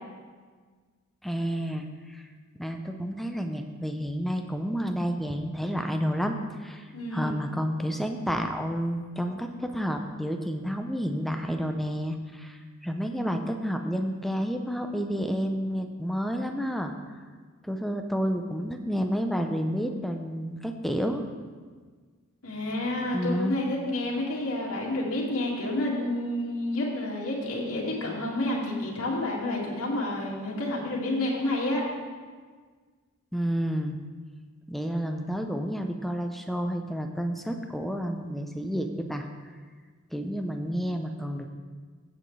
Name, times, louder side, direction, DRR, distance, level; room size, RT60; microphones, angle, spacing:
voice 1, 1.2-2.2 2.6-16.9 17.6-21.2 23.1-23.5 33.3-34.0 34.7-39.3 40.1-41.5, equal, ahead, 4 dB, 0.6 m, -30 dB
voice 2, 6.9-7.3 22.4-31.8, left 1 dB, 70° left, -4 dB, 2.2 m, -29 dB
16.0 x 7.8 x 3.3 m, 1.5 s
head